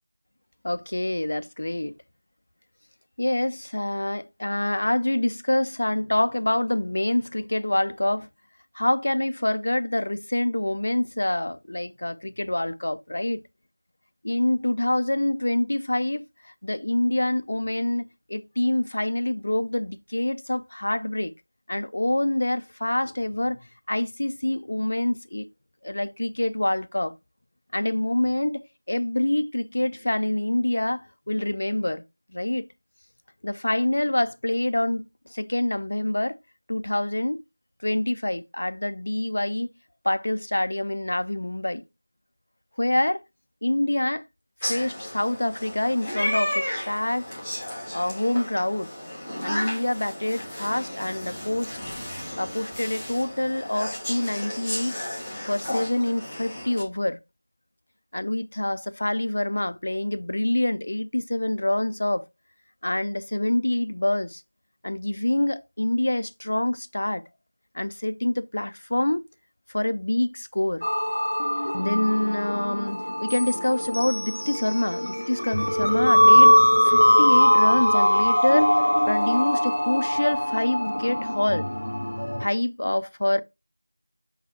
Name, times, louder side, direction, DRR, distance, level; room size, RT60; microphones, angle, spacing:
voice 1, 0.6-2.0 3.2-8.3 8.7-13.4 14.2-21.3 21.7-25.5 25.8-27.1 27.7-32.0 32.3-32.7 33.4-36.4 36.7-37.4 37.8-39.7 40.0-41.8 42.8-43.2 43.6-44.2 44.6-47.3 47.9-48.9 49.4-51.8 52.4-55.0 55.5-57.2 58.1-62.2 62.8-64.4 64.8-67.2 67.7-69.3 69.7-70.8 71.8-78.8 79.1-81.7 82.4-83.4, left 1 dB, 30° left, 0.4 m, -26 dB
sound 1, 44.6-56.8, left 1 dB, ahead, 0.9 m, -33 dB
sound 2, 70.8-82.4, equal, 85° left, 0.9 m, -21 dB
7.9 x 3.5 x 4.2 m
figure-of-eight pair, 180°, 0 cm